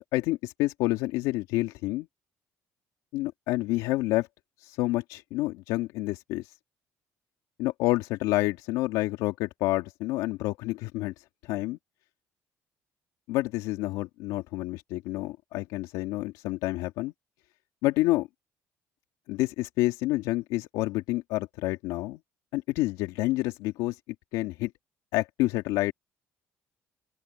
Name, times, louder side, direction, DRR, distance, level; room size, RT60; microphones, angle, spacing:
voice 1, 0.1-2.1 3.1-4.3 4.6-6.5 7.6-11.1 11.4-11.8 13.3-17.1 17.8-18.3 19.3-22.2 22.5-24.0 24.3-24.7 25.1-25.9, left 18 dB, 80° left, 2.2 m, -28 dB
open air
supercardioid pair, 65°, 6 cm